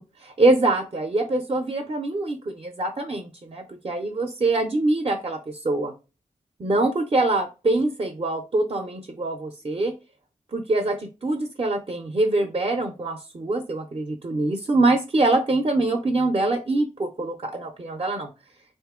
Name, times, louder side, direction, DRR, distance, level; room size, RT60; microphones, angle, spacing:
voice 1, 0.2-5.9 6.6-9.9 10.5-18.3, right 2 dB, 40° right, 4 dB, 0.6 m, -24 dB
3.5 x 2.6 x 3.6 m, 0.30 s
wide cardioid pair, 70°, 14 cm